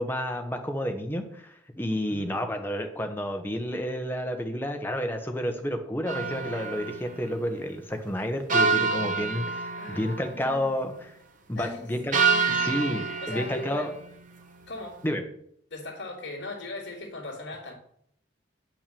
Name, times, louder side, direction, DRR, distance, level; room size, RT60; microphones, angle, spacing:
voice 1, 0.0-11.1 11.5-12.2 12.5-13.9 15.0-15.2, equal, 10° left, 4 dB, 1.2 m, -30 dB
sound 1, 6.1-7.0 8.5-10.3 12.1-13.8, right 5 dB, 40° right, 1.3 m, -26 dB
voice 2, 9.7-10.7 11.5-12.0 12.3-12.8 13.2-13.9 14.7-15.0 15.7-17.7, left 2 dB, 60° left, -8 dB, 2.9 m, -39 dB
8.8 x 6.1 x 6.9 m, 0.68 s
head